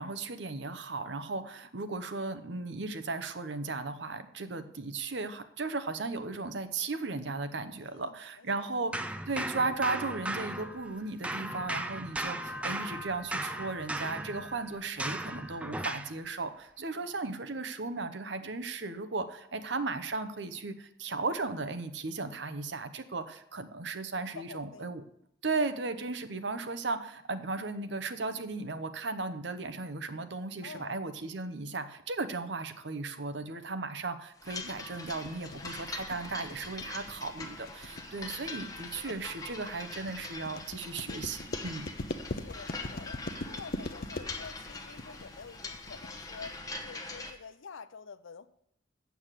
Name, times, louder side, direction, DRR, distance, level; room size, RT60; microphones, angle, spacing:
voice 1, 0.0-25.0 25.4-41.9, right 3 dB, 65° right, 10 dB, 0.9 m, -36 dB
voice 2, 7.8-8.7 14.3-14.5 16.9-17.2 24.2-24.9 30.6-31.0 35.4-35.7 42.3-46.5 46.8-48.5, left 5 dB, 85° left, 14 dB, 0.6 m, -49 dB
sound 1, 8.9-11.0 11.2-16.2, right 1 dB, 5° right, 0.4 m, -37 dB
sound 2, 34.4-47.3, left 3 dB, 20° left, 1.0 m, -43 dB
sound 3, 34.6-46.6, left 2 dB, 50° left, 0.7 m, -41 dB
8.2 x 7.1 x 7.5 m, 0.73 s
head